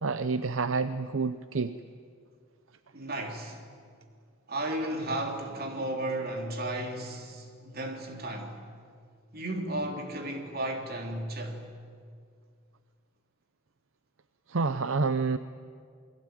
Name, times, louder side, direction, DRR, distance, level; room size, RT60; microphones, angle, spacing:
voice 1, 0.0-1.8 14.5-15.4, right 4 dB, 70° right, 0.7 m, -28 dB
voice 2, 2.9-3.6 4.5-8.6 9.3-11.6, right 1 dB, 45° right, 3.4 m, -34 dB
28.0 x 22.5 x 9.1 m
head